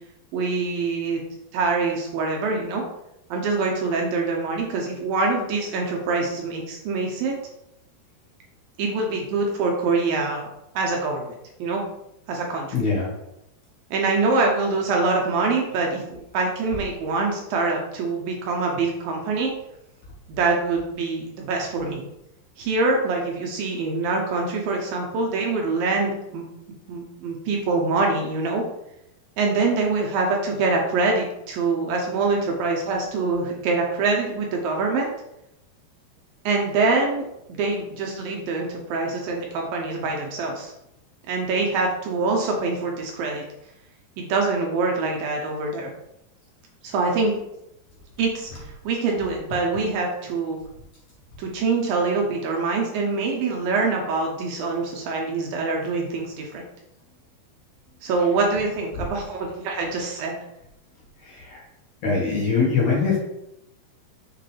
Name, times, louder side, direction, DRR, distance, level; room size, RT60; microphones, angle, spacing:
voice 1, 0.3-1.2 1.5-2.8 3.3-7.3 8.8-10.5 10.7-11.3 11.6-11.8 12.3-12.7 13.9-19.5 20.4-22.0 22.6-26.4 26.9-28.6 29.4-35.1 36.5-40.7 41.3-43.4 44.2-45.9 46.8-47.3 48.2-50.6 51.4-56.6 58.0-60.4, right 3 dB, 75° right, 0 dB, 2.4 m, -24 dB
voice 2, 12.7-13.1 58.2-58.3 58.9-59.1 61.2-61.6 62.0-63.2, left 4 dB, 55° left, -4 dB, 2.4 m, -23 dB
6.5 x 6.3 x 3.3 m, 0.83 s
omnidirectional pair, 4.7 m